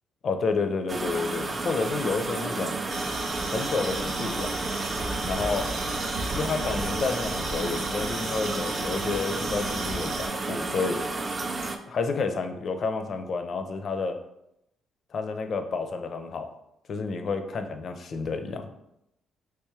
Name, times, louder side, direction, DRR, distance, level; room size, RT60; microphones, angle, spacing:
voice 1, 0.2-2.8 3.5-4.5 5.2-5.7 6.3-11.0 11.9-14.2 15.1-16.5 16.9-18.7, left 4 dB, 55° left, 7 dB, 0.4 m, -30 dB
sound 1, 0.9-11.8, right 3 dB, 30° right, 0.4 m, -31 dB
sound 2, 2.9-10.3, right 1 dB, 85° right, 0.9 m, -35 dB
3.5 x 3.0 x 3.1 m, 0.83 s
cardioid pair, 90°, 0 cm